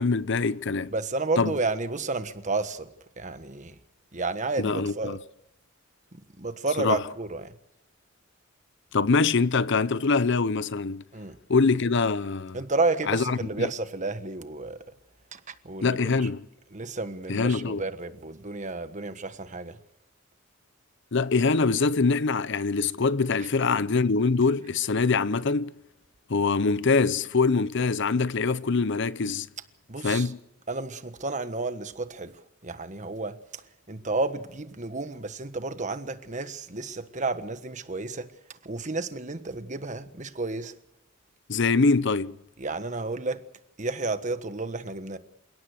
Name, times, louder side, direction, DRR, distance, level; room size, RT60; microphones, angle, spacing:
voice 1, 0.0-0.9 1.4-1.5 4.6-5.2 6.8-7.0 8.9-11.0 11.5-12.6 13.1-13.7 15.8-16.5 17.3-17.8 21.1-25.8 26.3-29.5 30.0-30.4 41.5-42.4, left 4 dB, 60° left, 0.7 m, -24 dB
voice 2, 0.9-2.9 3.2-3.8 4.1-5.2 6.1-7.5 11.1-11.3 12.5-14.8 15.3-16.2 16.7-19.8 29.9-30.3 30.7-32.3 32.6-33.6 33.9-38.3 38.6-40.7 42.6-43.4 43.8-45.2, right 3 dB, 40° right, 1.4 m, -31 dB
28.5 x 17.5 x 6.5 m
head